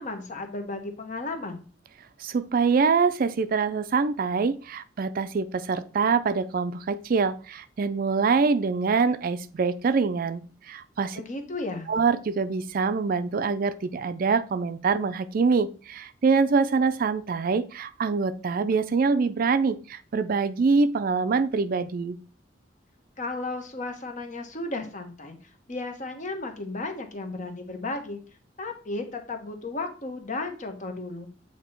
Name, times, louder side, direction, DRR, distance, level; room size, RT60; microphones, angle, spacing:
voice 1, 0.0-1.6 11.2-11.9 23.2-25.4 25.7-28.2 28.6-31.3, left 2 dB, 45° left, 5 dB, 1.1 m, -34 dB
voice 2, 2.2-11.2 11.9-22.2, right 4 dB, 50° right, 12 dB, 0.4 m, -25 dB
8.1 x 2.9 x 4.4 m, 0.37 s
head